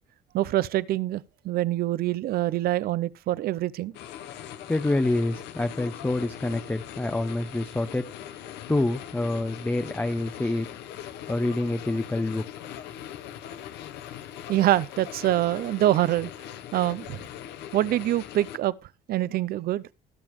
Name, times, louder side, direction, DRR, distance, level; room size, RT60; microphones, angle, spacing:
voice 1, 0.3-4.0 14.5-16.3 16.7-17.2 17.7-18.7 19.1-19.8, right 14 dB, 65° right, 0.6 m, -25 dB
sound 1, 3.9-18.6, left 11 dB, 80° left, 1.0 m, -41 dB
voice 2, 4.4-8.1 8.5-10.7 11.3-12.4, left 2 dB, 10° left, 0.7 m, -27 dB
20.0 x 7.0 x 3.1 m
cardioid pair, 110°, 17 cm